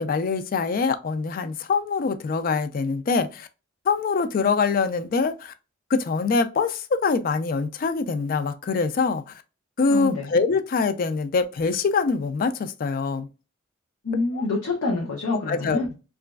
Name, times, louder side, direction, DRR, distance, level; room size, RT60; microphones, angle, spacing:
voice 1, 0.0-3.5 3.9-5.5 5.9-9.4 9.8-13.3 14.3-14.5 15.5-15.8, left 4 dB, 40° left, 0.3 m, -24 dB
voice 2, 9.9-10.3 14.0-15.9, left 3 dB, 75° left, 0.7 m, -26 dB
3.0 x 2.4 x 2.2 m
head